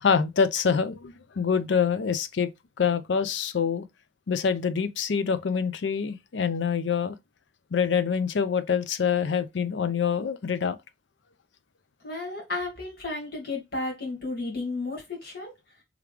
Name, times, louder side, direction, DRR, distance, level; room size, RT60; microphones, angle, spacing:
voice 1, 0.0-2.5 2.8-3.8 4.3-7.2 7.7-10.8, left 6 dB, 85° left, 0.5 m, -25 dB
voice 2, 12.0-15.5, left 3 dB, 60° left, 2.2 m, -33 dB
3.5 x 3.3 x 3.3 m
head